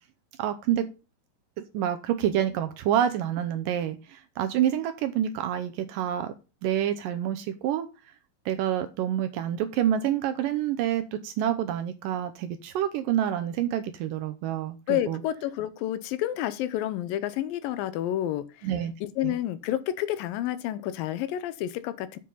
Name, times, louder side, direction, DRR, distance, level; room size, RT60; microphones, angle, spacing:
voice 1, 0.4-0.9 1.6-6.3 6.6-7.9 8.5-15.2 18.6-18.9 19.2-19.4, right 10 dB, 80° right, 2.2 m, -28 dB
voice 2, 14.9-18.7 19.0-22.2, left 12 dB, 80° left, 2.3 m, -30 dB
7.6 x 5.5 x 5.5 m
omnidirectional pair, 4.2 m